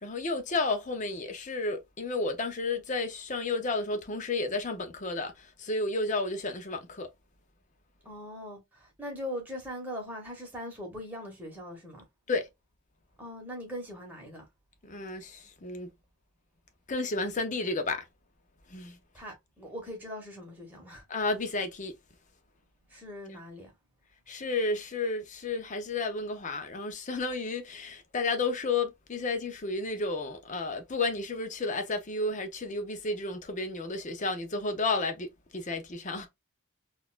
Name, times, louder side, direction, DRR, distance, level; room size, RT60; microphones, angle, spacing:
voice 1, 0.0-7.1 12.3-12.5 14.8-15.9 16.9-18.0 18.7-19.0 21.1-21.9 24.3-35.3 35.5-36.3, left 3 dB, 35° left, 0.6 m, -32 dB
voice 2, 8.0-12.0 13.2-14.5 19.1-21.0 22.9-23.7, equal, 10° right, 1.2 m, -41 dB
3.9 x 2.4 x 2.4 m
head